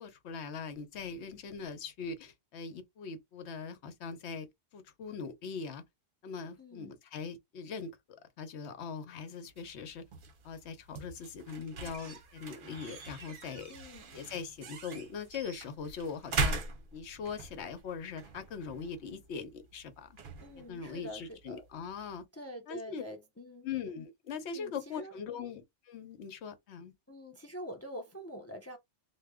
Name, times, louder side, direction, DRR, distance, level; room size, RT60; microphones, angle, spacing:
voice 1, 0.0-4.5 4.7-5.8 6.2-7.9 8.2-10.0 10.4-13.7 14.1-16.6 16.9-20.2 20.7-22.2 22.7-23.0 23.6-26.9, left 5 dB, 70° left, 0.9 m, -41 dB
voice 2, 6.6-6.9 13.7-14.1 20.4-21.6 22.3-23.7 24.5-25.5 27.1-28.8, equal, 25° left, 0.3 m, -46 dB
sound 1, 9.5-22.2, right 4 dB, 50° right, 0.8 m, -41 dB
2.9 x 2.1 x 3.5 m
omnidirectional pair, 1.2 m